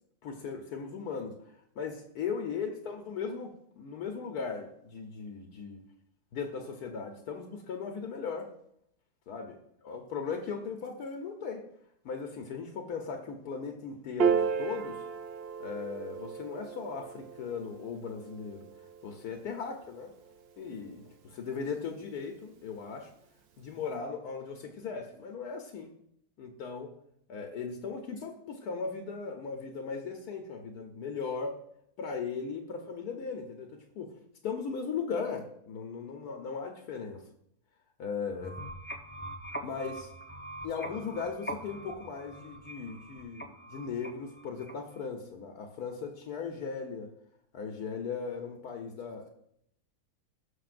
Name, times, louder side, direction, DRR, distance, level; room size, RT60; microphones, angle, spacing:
voice 1, 0.2-1.3 1.8-5.8 6.3-8.5 9.3-9.6 9.8-11.6 12.0-15.0 15.6-18.7 19.0-20.1 20.6-23.1 23.6-25.9 26.4-26.9 27.3-31.6 32.0-34.1 34.4-37.3 38.0-38.6 39.6-40.1 40.6-47.1 47.5-49.3, left 5 dB, 75° left, 3 dB, 1.4 m, -38 dB
Piano, 14.2-20.8, right 6 dB, 60° right, 0.6 m, -34 dB
sound 1, 38.3-45.1, right 1 dB, 10° left, 0.5 m, -43 dB
17.5 x 6.1 x 2.5 m, 0.73 s
omnidirectional pair, 1.7 m